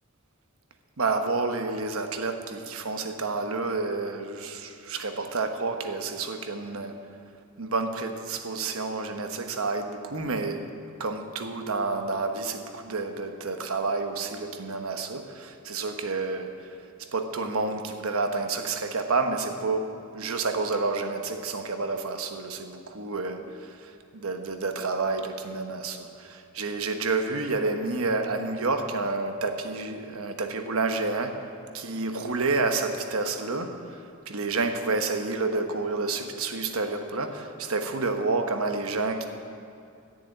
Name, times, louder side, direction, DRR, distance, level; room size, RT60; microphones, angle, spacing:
voice 1, 1.0-7.0 7.6-10.7 11.0-16.7 17.1-31.5 31.7-39.3, right 3 dB, 75° right, 6 dB, 1.1 m, -29 dB
13.0 x 7.1 x 9.1 m, 2.6 s
head